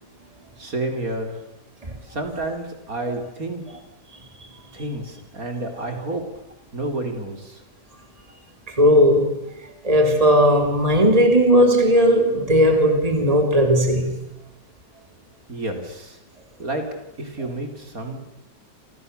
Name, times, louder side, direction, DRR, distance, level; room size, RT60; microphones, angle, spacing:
voice 1, 0.6-1.4 2.1-3.6 4.7-6.2 6.7-7.6 15.5-16.2 16.6-16.8 17.2-18.2, right 2 dB, 55° right, 4.2 m, -30 dB
voice 2, 8.7-9.4 9.8-14.2, equal, 20° right, 3.5 m, -16 dB
30.0 x 27.0 x 6.9 m
omnidirectional pair, 1.8 m